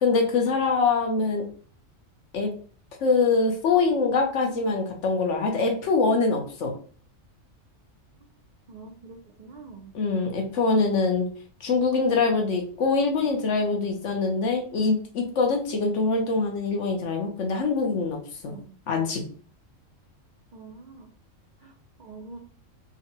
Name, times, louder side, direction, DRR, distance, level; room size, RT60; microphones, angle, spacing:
voice 1, 0.0-1.5 2.3-2.5 3.0-6.7 9.9-11.3 11.6-18.5 18.9-19.2, left 4 dB, 65° left, 3 dB, 1.0 m, -24 dB
voice 2, 8.7-9.9 18.4-18.7 20.5-21.1 21.6-21.7 22.0-22.4, right 3 dB, 65° right, 0 dB, 0.4 m, -44 dB
3.8 x 2.2 x 2.7 m, 0.43 s
omnidirectional pair, 1.4 m